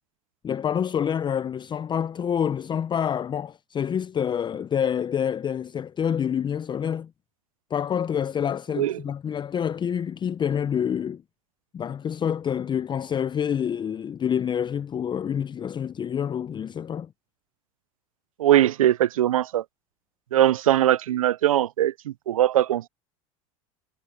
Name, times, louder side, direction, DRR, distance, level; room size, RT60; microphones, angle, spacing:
voice 1, 0.4-7.1 7.7-11.2 11.7-17.1, left 8 dB, 25° left, 0.6 m, -27 dB
voice 2, 18.4-19.6 20.3-22.9, right 12 dB, 90° right, 0.5 m, -21 dB
hypercardioid pair, 85°, 17 cm